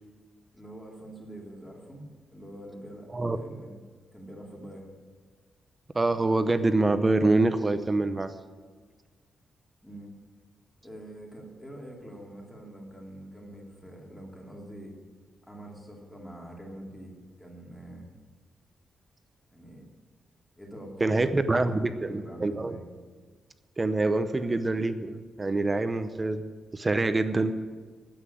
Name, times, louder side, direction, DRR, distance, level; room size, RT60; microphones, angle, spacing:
voice 1, 0.5-3.8 4.1-4.9 9.8-10.1 10.8-15.0 15.5-18.1 19.5-19.8 20.6-21.4 21.7-22.9, right 1 dB, 10° left, -2 dB, 2.7 m, -45 dB
voice 2, 5.9-8.3 21.0-22.8 23.8-26.4 26.7-27.5, right 2 dB, 20° right, 10 dB, 0.7 m, -25 dB
9.8 x 8.1 x 9.5 m, 1.5 s
wide cardioid pair, 130°, 0 cm